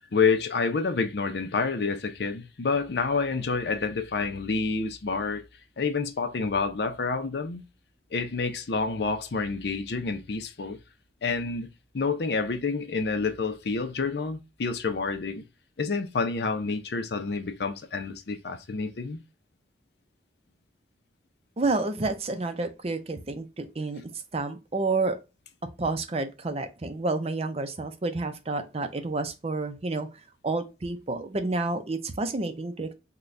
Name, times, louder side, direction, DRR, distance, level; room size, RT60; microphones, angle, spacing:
voice 1, 0.1-5.4 5.8-7.6 8.1-10.8 11.2-11.7 11.9-15.4 15.8-19.2, left 4 dB, 65° left, 0.5 m, -28 dB
voice 2, 21.6-24.0 24.3-25.2 25.8-30.1 30.4-32.9, right 3 dB, 35° right, 0.5 m, -29 dB
3.9 x 2.3 x 3.2 m
head